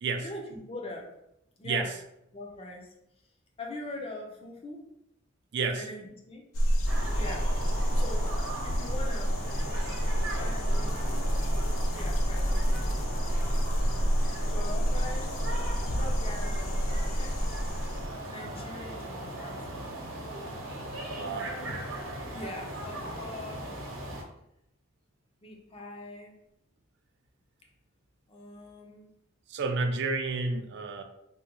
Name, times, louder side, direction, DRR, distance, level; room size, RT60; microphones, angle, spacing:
voice 1, 0.2-1.1 1.6-1.9 2.3-2.9 3.6-4.9 5.8-6.4 6.8-7.5 7.9-9.4 10.3-11.3 11.9-12.7 14.4-17.4 18.3-19.7 21.1-21.8 22.3-23.7 25.4-26.4 28.3-29.1, left 2 dB, 30° left, 1 dB, 0.5 m, -42 dB
voice 2, 5.5-5.8 13.9-14.0 21.1-21.6 29.5-31.0, right 3 dB, 60° right, 6 dB, 0.4 m, -30 dB
sound 1, 6.5-18.1, equal, 80° left, 0.4 m, -28 dB
sound 2, 6.9-24.2, right 1 dB, 80° right, 0.8 m, -38 dB
3.5 x 2.2 x 2.9 m, 0.81 s
head